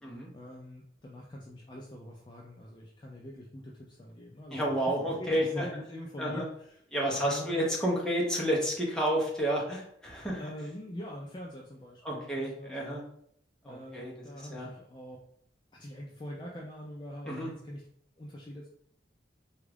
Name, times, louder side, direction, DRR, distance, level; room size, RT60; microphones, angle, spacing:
voice 1, 0.3-7.7 10.3-13.0 13.6-15.2 15.8-17.8 18.2-18.7, equal, 25° left, -3 dB, 0.4 m, -44 dB
voice 2, 4.5-5.6 6.2-6.4 6.9-10.4 12.0-13.0 13.6-14.1 14.5-14.7 17.3-17.5, equal, 5° left, -4 dB, 0.7 m, -30 dB
3.5 x 2.4 x 3.3 m, 0.67 s
head